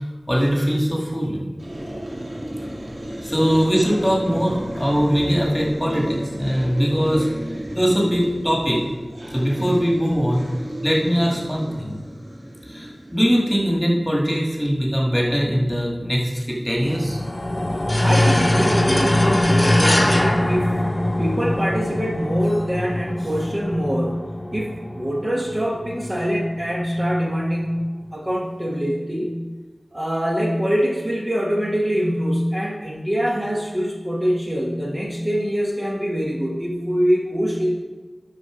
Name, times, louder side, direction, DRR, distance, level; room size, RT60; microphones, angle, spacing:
voice 1, 0.3-1.4 3.2-7.3 7.7-8.8 9.3-10.4 10.8-12.0 12.7-17.2, equal, 5° left, -2 dB, 2.1 m, -21 dB
sound 1, 1.6-14.5, equal, 80° right, 2.0 m, -33 dB
sound 2, 16.8-27.4 27.7-27.8, left 1 dB, 45° left, 1.0 m, -23 dB
sound 3, 17.9-21.5, left 1 dB, 25° left, 0.6 m, -24 dB
voice 2, 18.0-20.9 21.2-24.2 24.5-29.4 29.9-37.7, equal, 30° right, -3 dB, 1.4 m, -24 dB
12.0 x 4.3 x 5.1 m, 1.2 s
wide cardioid pair, 60°, 0 cm